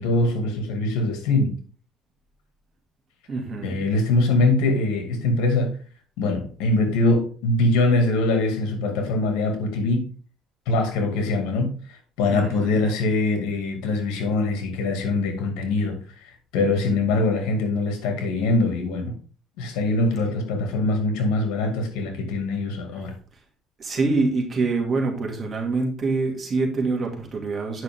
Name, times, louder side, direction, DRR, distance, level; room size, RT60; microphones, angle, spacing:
voice 1, 0.0-1.5 3.6-5.7 6.2-10.0 10.7-11.7 12.2-19.1 19.6-23.1, left 2 dB, 90° left, 5 dB, 2.3 m, -23 dB
voice 2, 3.3-3.8 12.3-12.8 22.9-23.1 23.8-27.8, right 3 dB, 30° right, 1 dB, 2.4 m, -25 dB
8.9 x 5.8 x 3.7 m, 0.40 s
cardioid pair, 125°, 0 cm